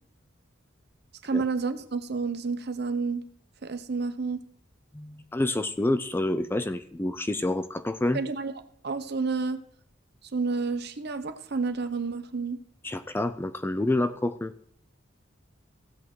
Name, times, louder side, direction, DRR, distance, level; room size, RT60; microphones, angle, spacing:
voice 1, 1.2-3.2 3.6-4.4 8.1-8.5 8.8-9.6 10.3-12.6, right 4 dB, 55° right, 10 dB, 0.8 m, -30 dB
voice 2, 4.9-8.2 12.8-14.5, left 1 dB, 10° left, 11 dB, 0.4 m, -28 dB
16.0 x 8.4 x 3.1 m, 0.67 s
head